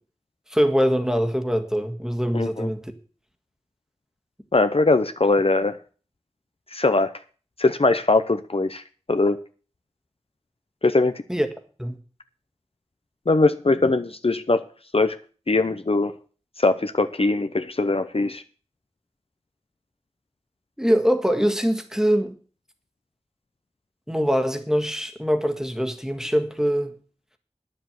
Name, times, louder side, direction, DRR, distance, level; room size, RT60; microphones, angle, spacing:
voice 1, 0.5-2.9 11.3-11.5 11.8-12.0 20.8-22.4 24.1-26.9, equal, 5° right, 1.6 m, -23 dB
voice 2, 2.3-2.7 4.5-5.8 6.7-7.1 7.6-8.8 9.1-9.4 10.8-11.2 13.3-14.6 14.9-15.2 15.5-16.1 16.6-18.4, left 3 dB, 55° left, 0.8 m, -21 dB
10.0 x 7.6 x 7.9 m
wide cardioid pair, 50°, 12 cm